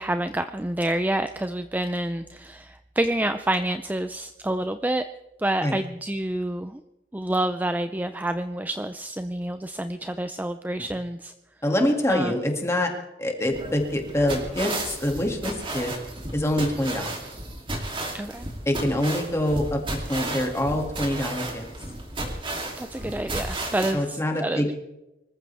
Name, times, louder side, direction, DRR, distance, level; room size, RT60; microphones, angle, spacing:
voice 1, 0.0-5.1 5.4-6.8 7.1-11.3 12.1-12.4 18.1-18.5 22.8-24.7, right 1 dB, 10° right, 9 dB, 0.4 m, -28 dB
voice 2, 11.6-12.9 13.2-15.9 16.3-17.1 18.7-19.8 20.1-21.7 23.9-24.7, left 1 dB, 15° left, 2 dB, 2.3 m, -25 dB
sound 1, 13.5-23.9, right 1 dB, 30° right, 3.0 m, -33 dB
24.5 x 14.5 x 3.5 m, 0.96 s
head